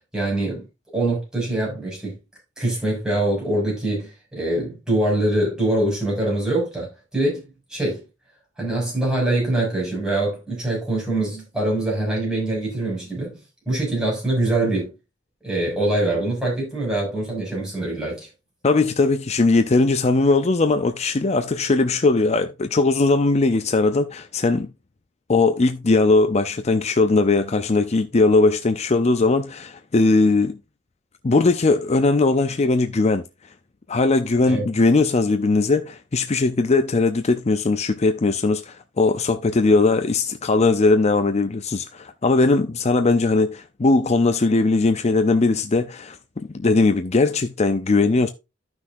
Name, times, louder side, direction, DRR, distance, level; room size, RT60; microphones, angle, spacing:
voice 1, 0.1-0.6 0.9-2.1 2.6-7.4 7.7-8.0 8.6-13.4 13.7-14.9 15.4-18.3 34.5-34.6, right 1 dB, 5° right, 6.2 m, -24 dB
voice 2, 18.6-24.7 25.3-30.6 31.2-33.2 33.9-48.3, left 3 dB, 35° left, 0.5 m, -19 dB
13.5 x 6.1 x 2.6 m
head